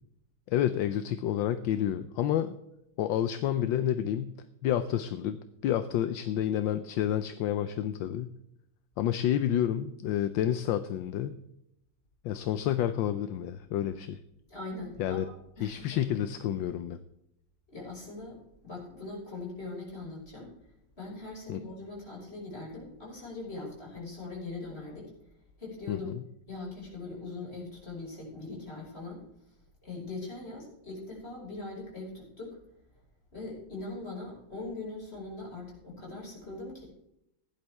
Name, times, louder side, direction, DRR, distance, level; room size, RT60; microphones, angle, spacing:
voice 1, 0.5-2.5 3.0-4.4 4.6-8.3 9.0-11.3 12.2-14.2 15.0-15.3 15.6-17.0 21.5-21.6 25.9-26.2, left 11 dB, 75° left, 11 dB, 1.4 m, -29 dB
voice 2, 14.5-15.2 15.6-16.0 17.7-20.5 21.0-25.1 25.6-26.1 26.5-29.3 29.8-32.6 33.3-36.8, left 3 dB, 30° left, -3 dB, 6.0 m, -41 dB
16.5 x 11.0 x 3.5 m, 0.80 s
omnidirectional pair, 2.2 m